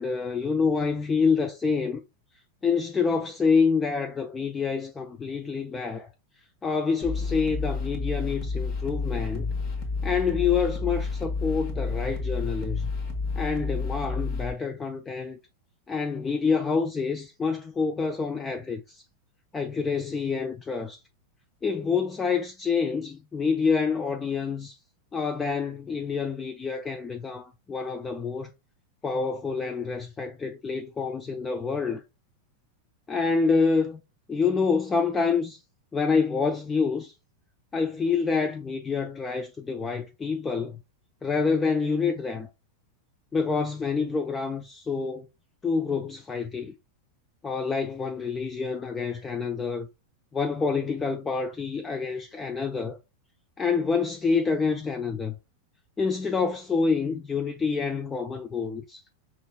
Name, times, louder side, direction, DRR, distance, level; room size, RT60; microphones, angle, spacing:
voice 1, 0.0-2.0 2.6-6.1 6.6-9.5 10.0-12.9 13.4-15.4 15.9-19.0 19.5-21.0 21.6-24.8 25.1-28.5 29.0-32.0 33.1-34.0 34.3-35.6 35.9-37.1 37.7-40.8 41.2-42.5 43.3-45.3 45.6-46.7 47.4-49.9 50.3-53.0 53.6-55.4 56.0-59.0, left 5 dB, 15° left, 0.4 m, -27 dB
sound 1, 7.0-14.5, left 4 dB, 40° left, 1.2 m, -30 dB
5.5 x 3.0 x 2.2 m
figure-of-eight pair, 90°, 0 cm